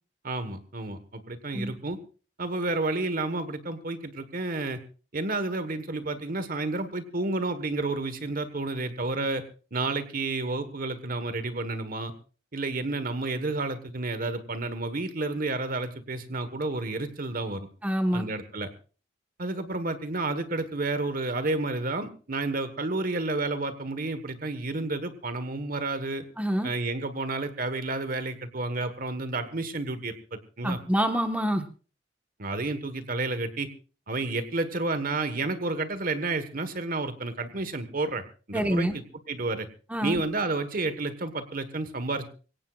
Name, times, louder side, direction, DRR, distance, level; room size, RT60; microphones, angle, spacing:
voice 1, 0.2-2.0 2.4-4.8 5.1-9.4 9.7-12.1 12.5-17.7 18.1-18.7 19.4-26.2 26.6-30.8 32.4-33.7 34.1-39.7 40.0-42.3, right 2 dB, 50° right, 11 dB, 1.4 m, -31 dB
voice 2, 17.8-18.2 26.4-26.7 30.6-31.6 38.5-38.9 39.9-40.2, equal, 10° right, 5 dB, 1.4 m, -26 dB
24.0 x 17.5 x 2.4 m, 0.37 s
head